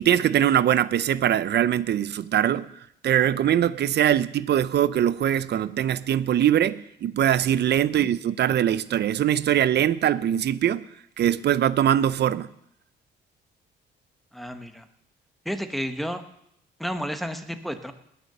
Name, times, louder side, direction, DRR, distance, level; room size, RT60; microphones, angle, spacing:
voice 1, 0.0-2.7 3.0-10.8 11.2-12.5, right 10 dB, 60° right, 0.6 m, -22 dB
voice 2, 14.3-14.9 15.4-16.2 16.8-17.9, equal, ahead, 1.2 m, -31 dB
19.5 x 6.8 x 6.7 m
cardioid pair, 90°, 20 cm